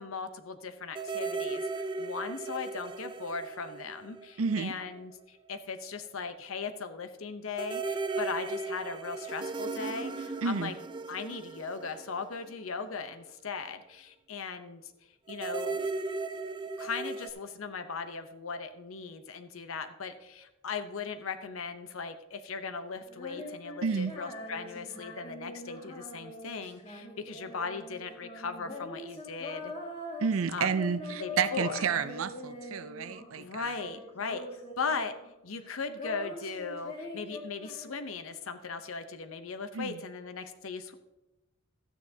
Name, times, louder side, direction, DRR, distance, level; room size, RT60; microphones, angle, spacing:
voice 1, 0.0-10.7 11.1-14.9 15.3-15.9 16.8-29.7 30.5-30.7 31.2-31.8 33.3-35.1 35.4-40.9, left 5 dB, 80° left, 9 dB, 0.8 m, -38 dB
sound 1, 0.9-4.7 5.0-5.1 7.5-13.0 15.3-17.3, right 3 dB, 20° right, 0.4 m, -36 dB
voice 2, 4.4-4.8 10.4-10.7 23.8-24.1 30.2-33.7 39.7-40.0, right 6 dB, 85° right, 13 dB, 0.5 m, -30 dB
Female singing, 23.1-33.4 33.7-35.3 35.6-38.3, left 2 dB, 25° left, 2.0 m, -43 dB
13.0 x 9.1 x 2.8 m, 0.99 s
head